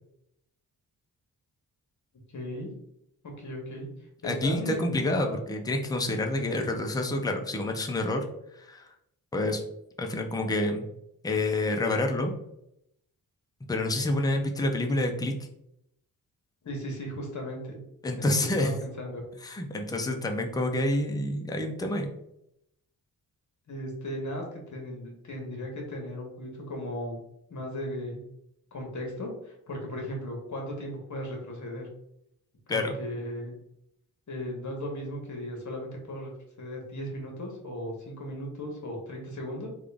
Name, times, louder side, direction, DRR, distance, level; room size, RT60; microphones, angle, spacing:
voice 1, 2.3-2.7 3.2-3.9 4.2-5.1 6.4-6.6 16.6-17.8 18.2-19.2 23.7-27.2 27.5-28.2 28.7-31.9 32.7-33.5 34.3-36.3 36.6-39.7, equal, 50° left, 0 dB, 1.2 m, -36 dB
voice 2, 4.2-8.2 8.5-8.9 9.3-9.6 10.0-10.9 11.2-12.3 13.7-15.3 18.0-18.7 19.4-22.1 32.7-33.0, left 1 dB, 10° left, 3 dB, 0.4 m, -28 dB
3.6 x 2.3 x 3.4 m, 0.79 s
wide cardioid pair, 105°, 37 cm